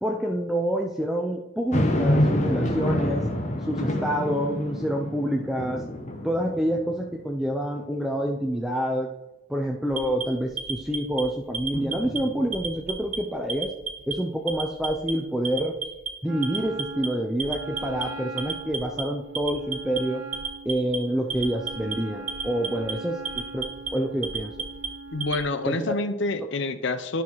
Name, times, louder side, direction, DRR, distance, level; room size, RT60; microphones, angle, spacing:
voice 1, 0.0-3.3 3.7-5.8 6.2-9.1 9.5-13.7 14.1-15.8 16.2-20.2 20.7-24.5 25.7-25.9, right 1 dB, ahead, 1 dB, 0.4 m, -27 dB
sound 1, 1.7-7.3 7.8-7.9 11.7-12.8, left 1 dB, 35° left, 0.8 m, -27 dB
Alarm, 9.9-11.2 11.5-12.2 12.5-13.2 13.5-14.1 14.5-15.1 15.4-16.1 16.4-17.1 17.4-18.0 18.4-19.0 19.3-20.0 20.3-21.0 21.3-21.9 22.3-22.9 23.2-23.9 24.2-25.4, right 6 dB, 35° right, 0.9 m, -32 dB
Wind instrument woodwind instrument, 16.2-25.8, right 3 dB, 85° right, 0.7 m, -41 dB
voice 2, 25.1-27.2, left 2 dB, 55° left, 11 dB, 0.6 m, -27 dB
11.0 x 5.7 x 3.0 m, 1.1 s
head